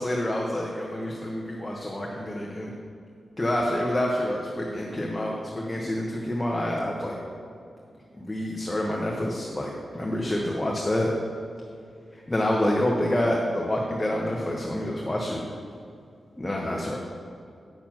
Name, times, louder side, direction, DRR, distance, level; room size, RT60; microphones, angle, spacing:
voice 1, 0.0-2.7 3.4-7.2 8.1-11.1 12.1-15.4 16.4-17.0, left 1 dB, 15° left, -2 dB, 0.9 m, -27 dB
8.9 x 6.7 x 6.0 m, 2.4 s
wide cardioid pair, 140°, 0 cm